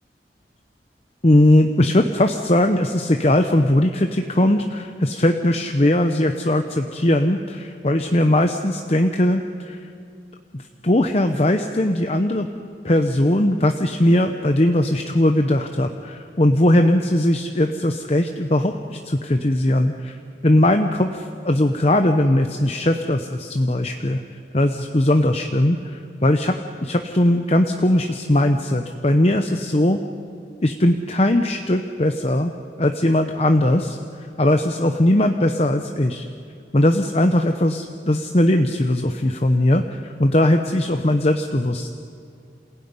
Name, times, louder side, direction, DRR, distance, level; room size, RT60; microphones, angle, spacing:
voice 1, 1.2-9.9 10.5-12.5 12.8-24.2 24.5-30.0 30.6-32.5 32.8-36.2 36.7-41.9, left 1 dB, 35° left, 5 dB, 0.8 m, -19 dB
27.5 x 17.0 x 9.7 m, 2.4 s
head